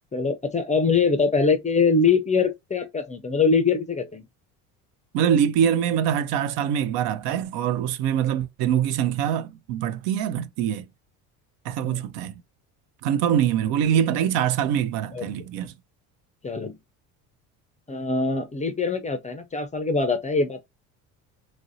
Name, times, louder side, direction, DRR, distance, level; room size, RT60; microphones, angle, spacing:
voice 1, 0.1-4.3 11.8-12.0 15.1-15.2 16.4-16.8 17.9-20.6, left 4 dB, 15° left, 0.4 m, -23 dB
voice 2, 5.1-10.8 11.7-12.3 13.0-15.7, right 9 dB, 65° right, 0.6 m, -24 dB
3.0 x 2.6 x 2.6 m
hypercardioid pair, 75°, 45 cm